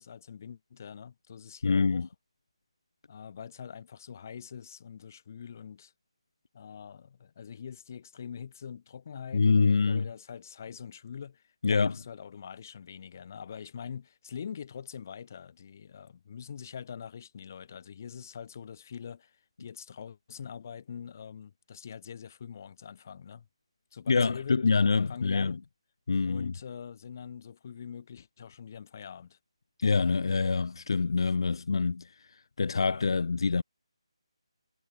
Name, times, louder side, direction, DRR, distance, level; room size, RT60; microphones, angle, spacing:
voice 1, 0.0-2.1 3.1-5.9 6.5-23.5 23.9-24.6 25.1-25.7 26.3-29.4, left 7 dB, 30° left, 1.7 m, -44 dB
voice 2, 1.6-2.1 9.3-10.0 11.6-11.9 24.1-25.5 26.1-26.5 29.8-32.0 32.6-33.6, left 4 dB, 55° left, 0.5 m, -25 dB
hypercardioid pair, 170°, 3 cm